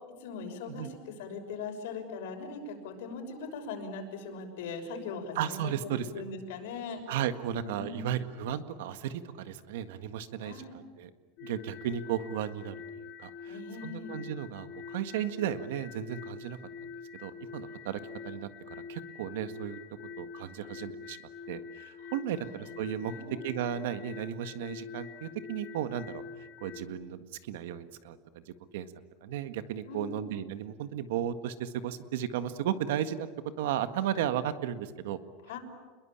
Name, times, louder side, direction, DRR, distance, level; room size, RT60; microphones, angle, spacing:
voice 1, 0.2-7.0 7.5-8.1 10.4-10.8 13.5-14.2 22.0-22.8 23.0-23.4 29.9-30.3 35.4-35.6, left 4 dB, 80° left, 4 dB, 6.2 m, -40 dB
voice 2, 5.3-6.1 7.1-11.1 11.4-12.7 13.2-19.8 20.2-21.2 21.5-23.1 23.4-26.2 26.6-28.9 29.2-33.3 33.6-35.2, right 10 dB, 80° right, 11 dB, 1.7 m, -35 dB
sound 1, 11.4-26.8, left 6 dB, 35° left, 2.7 m, -45 dB
28.5 x 22.0 x 8.9 m, 1.3 s
supercardioid pair, 170°, 0 cm